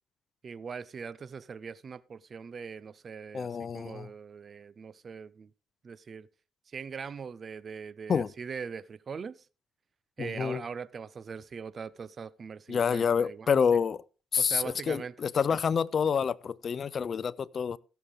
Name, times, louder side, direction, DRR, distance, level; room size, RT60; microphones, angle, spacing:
voice 1, 0.4-5.5 5.8-6.3 6.7-9.5 10.2-13.8 14.4-15.1 15.5-15.6, right 6 dB, 45° right, 0.7 m, -41 dB
voice 2, 3.3-4.1 8.1-8.3 10.2-10.6 12.7-14.0 14.3-17.8, left 6 dB, 50° left, 0.5 m, -28 dB
16.5 x 7.0 x 3.6 m
supercardioid pair, 70°, 0 cm